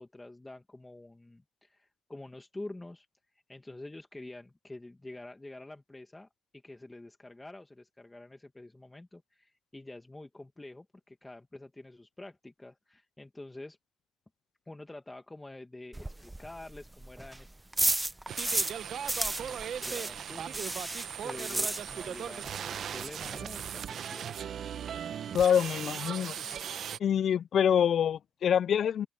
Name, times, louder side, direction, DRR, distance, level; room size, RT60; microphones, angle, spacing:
voice 1, 0.0-3.1 3.5-13.8 14.7-17.6 19.4-20.8 21.2-24.3, left 2 dB, 15° left, 2.0 m, -47 dB
sound 1, 15.9-18.8 19.1-22.3 22.5-22.6 23.0-23.1 23.2-23.7, right 2 dB, 15° right, 0.9 m, -33 dB
sound 2, 18.3-27.0, right 8 dB, 60° right, 1.0 m, -38 dB
voice 2, 25.3-26.4 27.0-29.1, left 8 dB, 60° left, 0.4 m, -26 dB
open air
cardioid pair, 90°, 0 cm